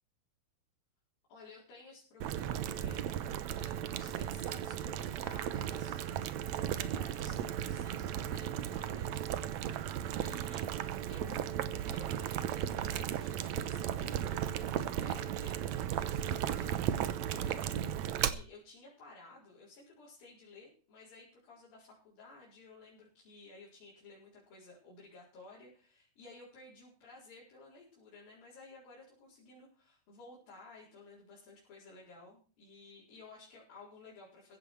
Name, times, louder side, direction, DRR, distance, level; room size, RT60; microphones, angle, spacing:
voice 1, 1.3-3.2 3.5-10.7 11.1-11.6 11.8-34.6, left 3 dB, 75° left, -6 dB, 6.1 m, -55 dB
Boiling, 2.2-18.3, right 10 dB, 70° right, 1.8 m, -35 dB
15.5 x 11.5 x 4.6 m, 0.42 s
omnidirectional pair, 4.1 m